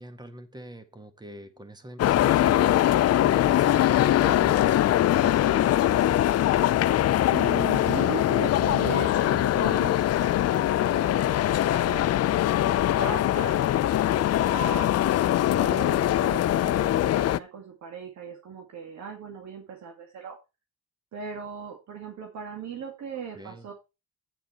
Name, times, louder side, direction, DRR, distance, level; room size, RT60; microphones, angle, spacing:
voice 1, 0.0-2.7 3.2-4.8 5.1-6.3 14.3-14.6 23.3-23.7, right 1 dB, 15° right, 9 dB, 1.7 m, -43 dB
sound 1, 2.0-17.4, left 13 dB, 55° left, 0.5 m, -22 dB
voice 2, 7.3-13.6 13.9-14.9 15.5-20.4 21.1-23.7, right 6 dB, 65° right, 3 dB, 2.2 m, -38 dB
8.9 x 7.5 x 4.3 m, 0.27 s
cardioid pair, 90°, 30 cm